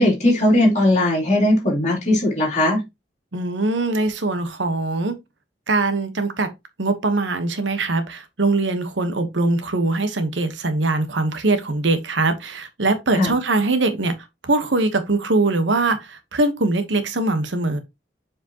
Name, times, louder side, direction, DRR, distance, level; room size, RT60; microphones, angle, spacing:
voice 1, 0.0-2.8 13.1-13.3, left 1 dB, 40° left, 3.0 m, -18 dB
voice 2, 3.3-5.1 5.7-6.5 6.8-14.1 14.4-17.8, right 2 dB, 80° right, 1.1 m, -22 dB
7.1 x 5.1 x 2.9 m
head